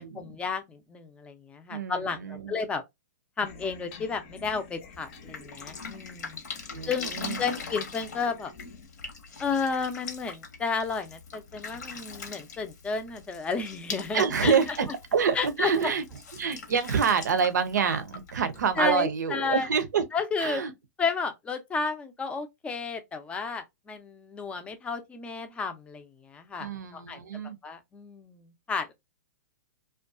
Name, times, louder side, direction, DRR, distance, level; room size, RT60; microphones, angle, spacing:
voice 1, 0.1-2.8 3.4-6.4 6.9-8.5 9.4-14.5 15.3-15.9 18.8-19.7 20.1-20.6 21.0-27.2 27.6-28.9, left 5 dB, 10° left, 0.4 m, -32 dB
voice 2, 1.7-2.5 6.7-7.4 14.1-16.0 16.3-20.0 20.4-20.7 26.6-27.6, right 6 dB, 85° right, 0.6 m, -27 dB
sound 1, 3.4-8.9, left 3 dB, 45° left, 0.7 m, -46 dB
Drip, 4.9-19.0, left 5 dB, 75° left, 0.9 m, -42 dB
2.5 x 2.2 x 2.4 m
hypercardioid pair, 130°, 9 cm